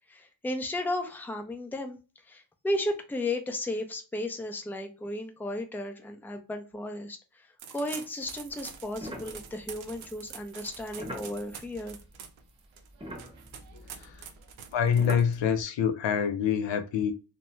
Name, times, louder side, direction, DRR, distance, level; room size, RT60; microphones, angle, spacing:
voice 1, 0.1-2.0 2.3-12.0, left 1 dB, 5° left, 0.5 m, -34 dB
sound 1, 7.6-15.6, right 8 dB, 80° right, 0.6 m, -46 dB
sound 2, 8.2-12.5 12.7-15.6, equal, 10° right, 0.9 m, -44 dB
voice 2, 13.7-14.3 14.7-17.1, left 7 dB, 70° left, 0.6 m, -26 dB
2.5 x 2.2 x 3.0 m
cardioid pair, 60°, 46 cm